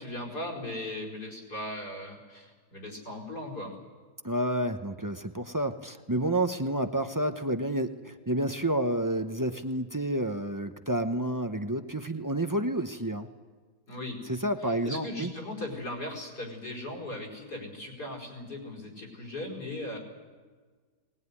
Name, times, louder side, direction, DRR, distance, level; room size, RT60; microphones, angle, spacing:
voice 1, 0.0-3.7 13.9-14.2 14.6-20.0, left 1 dB, 75° left, 1 dB, 5.6 m, -38 dB
voice 2, 4.2-13.3 14.3-15.3, right 1 dB, 20° right, 7 dB, 0.5 m, -30 dB
21.0 x 19.5 x 9.7 m, 1.5 s
omnidirectional pair, 1.7 m